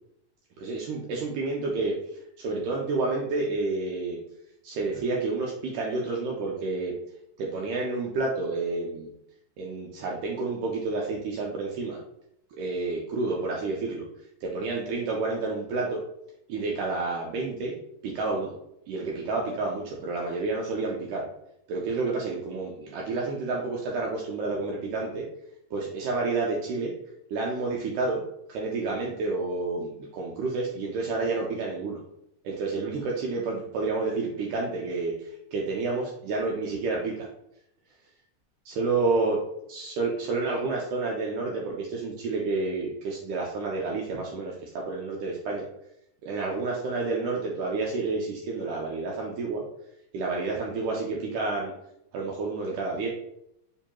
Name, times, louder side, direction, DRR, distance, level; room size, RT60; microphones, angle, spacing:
voice 1, 0.6-1.9 2.4-4.2 4.6-6.9 7.4-9.1 9.6-12.0 12.5-14.1 14.4-16.0 16.5-17.8 18.0-18.5 18.9-21.3 21.7-25.3 25.7-26.9 27.3-28.2 28.5-32.0 32.4-37.3 38.6-39.4 39.7-45.7 46.2-49.6 50.1-51.7 52.1-53.1, right 3 dB, 90° right, -2 dB, 1.7 m, -29 dB
6.9 x 2.9 x 2.2 m, 0.78 s
omnidirectional pair, 4.2 m